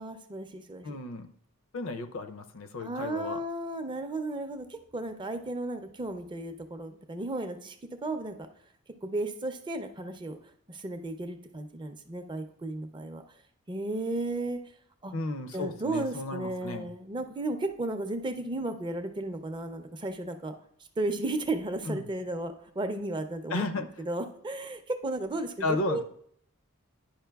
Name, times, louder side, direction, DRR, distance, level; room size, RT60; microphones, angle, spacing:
voice 1, 0.0-1.0 2.8-7.8 8.0-8.5 9.0-10.4 10.7-13.2 13.7-14.6 15.0-15.1 15.5-20.6 21.0-26.0, right 2 dB, 20° right, 7 dB, 0.4 m, -34 dB
voice 2, 0.8-1.3 1.7-3.4 15.1-16.9 21.9-22.1 23.5-23.9 25.6-26.0, left 2 dB, 65° left, 10 dB, 0.5 m, -33 dB
10.0 x 5.2 x 2.3 m, 0.65 s
head